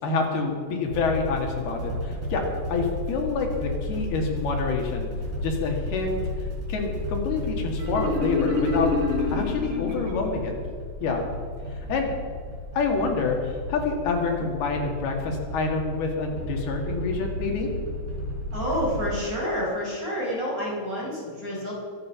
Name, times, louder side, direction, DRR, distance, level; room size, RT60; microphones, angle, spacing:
voice 1, 0.0-5.1 5.4-6.2 6.7-8.9 9.3-10.6 11.0-11.3 11.9-12.1 12.7-17.7, left 4 dB, 75° left, 1 dB, 3.9 m, -27 dB
sound 1, 0.9-19.2, left 1 dB, 60° right, 5.1 m, -33 dB
Marimba xylophone, 7.8-10.6, left 3 dB, 80° right, 5.4 m, -28 dB
voice 2, 18.5-21.7, equal, 20° right, -5 dB, 4.8 m, -28 dB
23.0 x 9.3 x 5.7 m, 2.1 s
omnidirectional pair, 4.6 m